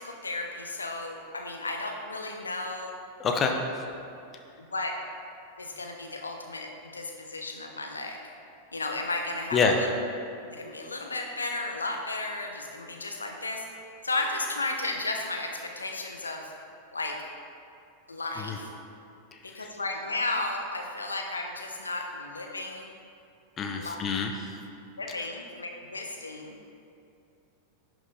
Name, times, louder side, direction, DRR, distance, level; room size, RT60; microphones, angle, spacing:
voice 1, 0.0-2.9 4.6-4.9 5.6-8.2 8.7-9.9 10.5-13.6 14.0-16.5 16.9-17.2 18.1-18.7 19.4-22.9 23.7-24.0 25.0-26.5, left 2 dB, 75° left, 2 dB, 0.9 m, -34 dB
voice 2, 3.2-3.6 9.5-9.8 18.4-18.6 19.6-19.7 23.6-24.3, left 5 dB, 25° left, 3 dB, 0.9 m, -26 dB
11.0 x 6.1 x 4.1 m, 2.6 s
figure-of-eight pair, 90°, 0 cm